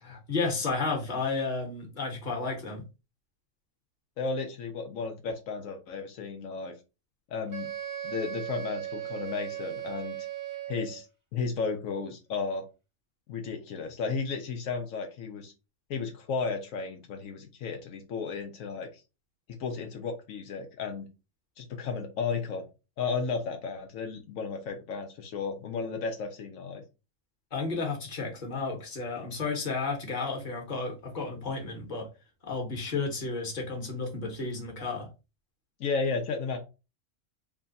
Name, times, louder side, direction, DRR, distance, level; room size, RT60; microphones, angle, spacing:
voice 1, 0.0-2.8 27.5-32.1 32.4-35.1, left 4 dB, 40° left, 1.3 m, -32 dB
voice 2, 4.2-6.7 7.3-7.7 8.0-10.2 10.7-11.1 11.3-12.7 13.3-15.5 15.9-19.0 19.6-21.1 21.6-22.7 23.0-26.8 35.8-36.6, left 5 dB, 85° left, 1.1 m, -33 dB
Wind instrument woodwind instrument, 7.5-11.1, right 11 dB, 20° right, 0.6 m, -37 dB
3.2 x 2.4 x 3.9 m
omnidirectional pair, 1.4 m